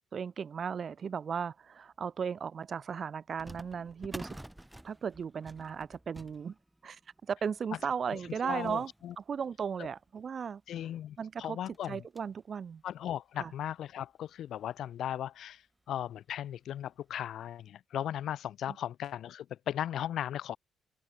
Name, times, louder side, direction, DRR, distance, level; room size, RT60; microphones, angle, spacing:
voice 1, 0.1-4.4 4.8-6.5 6.8-7.0 7.3-8.9 9.2-10.6 11.2-11.6 11.8-12.8 13.4-13.5, right 6 dB, 40° right, 0.4 m, -36 dB
sound 1, 1.9-2.0 3.4-10.3 10.9-11.0 11.2-11.3 11.7-12.5 13.0-13.1 13.9-14.0 14.4-14.5 15.9-16.1 16.5-16.6 17.3-17.4, right 1 dB, 5° right, 3.2 m, -50 dB
voice 2, 8.4-9.1 10.7-12.0 12.8-15.6 15.9-20.6, left 11 dB, 70° left, 1.1 m, -37 dB
open air
cardioid pair, 120°, 0 cm